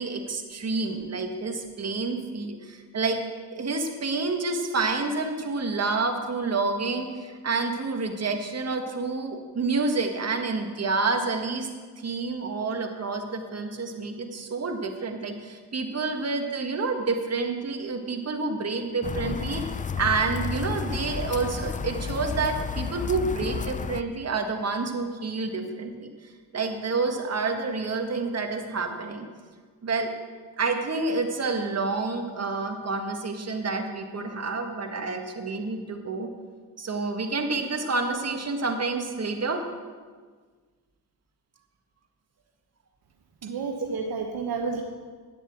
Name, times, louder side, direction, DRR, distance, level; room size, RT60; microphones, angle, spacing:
voice 1, 0.0-3.2 3.5-11.7 12.0-29.3 29.8-30.1 30.6-36.3 36.8-39.6, right 3 dB, 40° right, 5 dB, 1.7 m, -29 dB
sound 1, 19.0-24.0, left 5 dB, 20° left, 0.4 m, -32 dB
voice 2, 43.4-44.8, right 4 dB, 65° right, 2 dB, 1.2 m, -30 dB
10.0 x 7.9 x 7.4 m, 1.5 s
cardioid pair, 65°, 39 cm